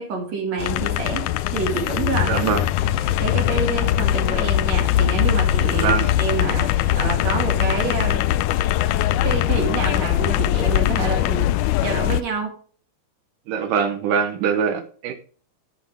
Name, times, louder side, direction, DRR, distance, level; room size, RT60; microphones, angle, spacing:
voice 1, 0.0-2.5 2.8-8.2 9.2-11.6 11.8-12.5, right 5 dB, 55° right, 1 dB, 3.2 m, -27 dB
sound 1, 0.6-12.2, left 13 dB, 80° left, 2.0 m, -21 dB
voice 2, 2.3-2.7 5.7-6.1 13.5-15.1, right 6 dB, 80° right, 7 dB, 2.5 m, -23 dB
11.5 x 7.4 x 3.5 m, 0.43 s
omnidirectional pair, 3.7 m